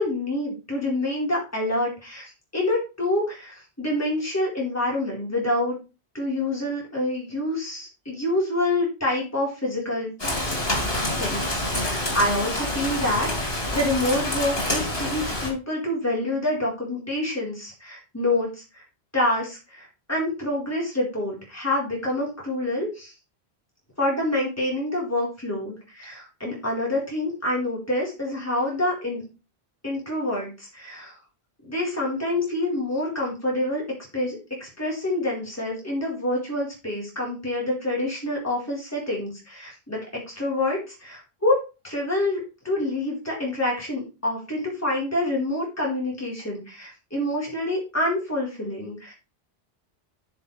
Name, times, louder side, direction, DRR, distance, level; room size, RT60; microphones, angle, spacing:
voice 1, 0.0-5.8 6.1-10.1 11.2-18.8 19.1-23.1 24.0-29.2 29.8-31.2 31.6-33.8 34.1-40.0 40.3-49.1, left 1 dB, 15° left, -4 dB, 4.0 m, -27 dB
Rain, 10.2-15.5, left 1 dB, 65° left, 4.1 m, -27 dB
14.0 x 6.0 x 3.3 m, 0.30 s
omnidirectional pair, 1.1 m